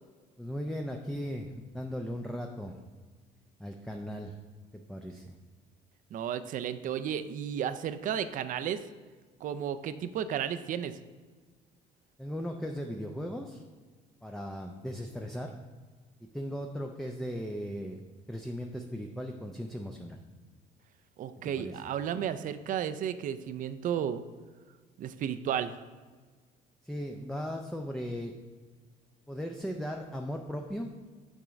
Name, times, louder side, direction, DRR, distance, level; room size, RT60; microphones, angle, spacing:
voice 1, 0.4-2.8 3.6-4.4 4.9-5.4 12.2-13.6 14.2-15.6 16.3-18.0 18.3-20.2 21.6-21.8 26.8-28.3 29.3-30.9, equal, ahead, 2 dB, 0.5 m, -37 dB
voice 2, 6.1-8.8 9.4-10.9 21.2-24.2 25.0-25.7, right 9 dB, 50° right, 12 dB, 0.4 m, -33 dB
8.7 x 3.6 x 5.1 m, 1.4 s
cardioid pair, 110°, 17 cm